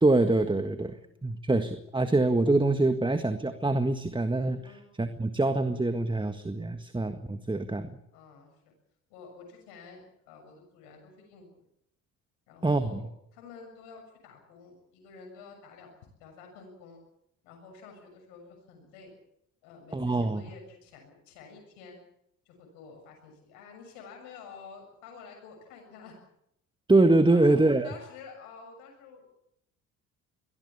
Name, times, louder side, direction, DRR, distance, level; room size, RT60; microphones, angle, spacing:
voice 1, 0.0-1.0 1.2-4.6 5.0-7.9 12.6-13.0 19.9-20.4 26.9-27.9, right 2 dB, 10° right, 9 dB, 1.7 m, -24 dB
voice 2, 8.1-8.8 9.1-11.6 12.5-15.9 16.2-17.0 17.4-19.1 19.6-22.0 22.5-26.2 27.3-29.4, left 5 dB, 70° left, 2 dB, 7.1 m, -50 dB
23.0 x 18.5 x 8.5 m, 0.77 s
hypercardioid pair, 55°, 44 cm